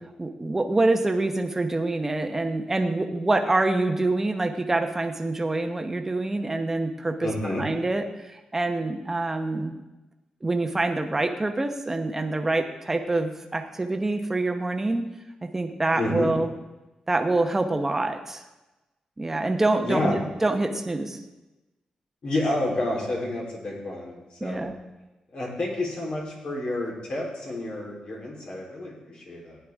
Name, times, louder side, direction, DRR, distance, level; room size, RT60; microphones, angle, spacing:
voice 1, 0.2-7.3 7.6-8.0 8.3-9.7 10.4-15.0 15.4-16.5 17.1-18.4 19.2-21.2 24.4-24.7, right 2 dB, 15° right, 5 dB, 1.0 m, -26 dB
voice 2, 7.2-7.7 15.9-16.3 19.8-20.2 22.2-24.7 25.3-29.6, left 1 dB, 50° left, -2 dB, 3.8 m, -29 dB
17.0 x 10.5 x 3.6 m, 1.0 s
wide cardioid pair, 150°, 2 cm